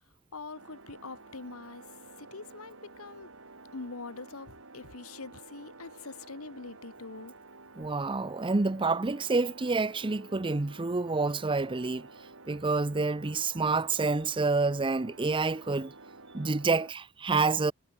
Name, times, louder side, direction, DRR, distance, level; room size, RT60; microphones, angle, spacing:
voice 1, 0.3-1.8 2.2-3.3 3.7-7.3, left 3 dB, 65° left, 1.5 m, -44 dB
sound 1, 0.5-16.9, right 3 dB, 60° right, 4.7 m, -51 dB
voice 2, 7.8-12.1 12.5-15.9 16.3-17.7, right 3 dB, 20° right, 0.6 m, -28 dB
head